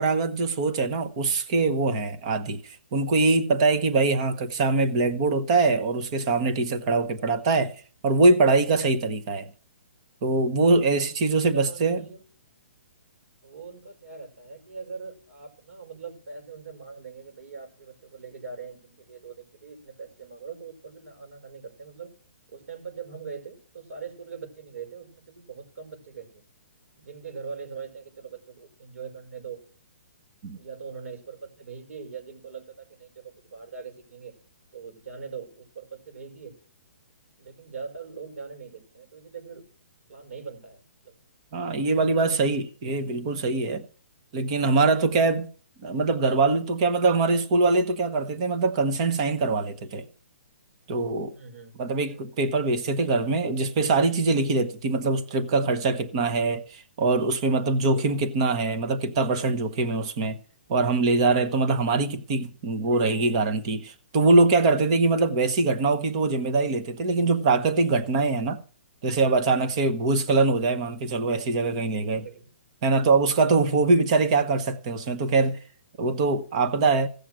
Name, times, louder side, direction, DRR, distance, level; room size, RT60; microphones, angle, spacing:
voice 1, 0.0-2.6 2.9-7.7 8.0-9.5 10.2-12.0 30.4-30.6 41.5-43.8 44.3-45.5 45.8-50.1 50.9-51.3 51.8-60.4 60.7-68.6 69.0-72.2 72.8-75.6 76.0-77.1, right 3 dB, 25° right, 1.0 m, -23 dB
voice 2, 11.0-12.2 13.4-22.1 22.5-26.4 27.0-29.6 30.5-34.3 34.7-36.5 37.4-39.6 40.1-41.2 51.3-51.8 57.9-58.3 72.1-72.5, right 5 dB, 70° right, 5.6 m, -42 dB
16.0 x 6.6 x 6.3 m
hypercardioid pair, 175°, 8 cm